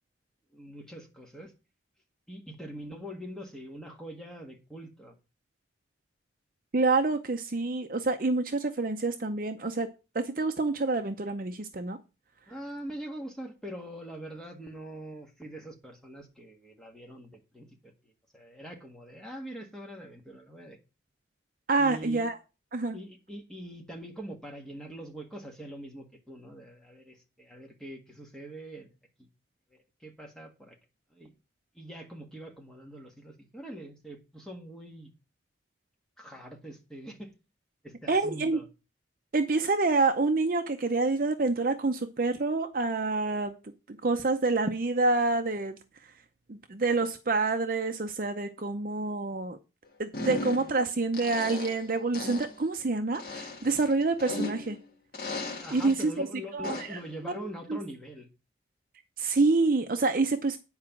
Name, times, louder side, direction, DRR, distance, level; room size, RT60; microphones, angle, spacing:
voice 1, 0.5-1.5 2.3-5.2 12.5-20.8 21.8-22.3 22.9-28.9 29.7-30.8 31.1-31.3 31.7-35.1 36.2-37.3 37.8-38.7 55.5-58.3, right 1 dB, 5° left, 1.6 m, -43 dB
voice 2, 6.7-9.9 10.1-12.0 21.7-22.4 22.7-23.0 38.1-38.6 39.3-45.8 46.5-49.6 50.0-54.8 55.7-56.3 56.5-57.3 57.7-57.8 59.2-60.6, right 3 dB, 50° right, 0.6 m, -27 dB
sound 1, 50.1-50.8 51.1-51.9 52.1-52.6 53.1-54.8 55.1-56.0 56.6-57.0, left 2 dB, 50° left, 1.5 m, -37 dB
9.6 x 4.8 x 5.9 m
head